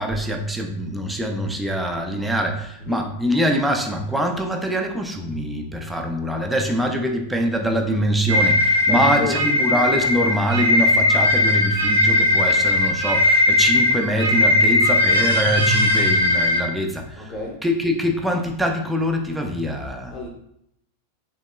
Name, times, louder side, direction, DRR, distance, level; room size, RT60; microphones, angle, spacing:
voice 1, 0.0-17.3 17.6-20.1, equal, 5° right, 2 dB, 0.4 m, -24 dB
sound 1, 8.3-16.6, left 2 dB, 70° right, 0.5 m, -18 dB
voice 2, 8.8-9.5 17.2-17.6 20.1-20.3, left 2 dB, 25° left, 0 dB, 0.8 m, -30 dB
3.5 x 3.0 x 2.2 m, 0.74 s
figure-of-eight pair, 90°, 0 cm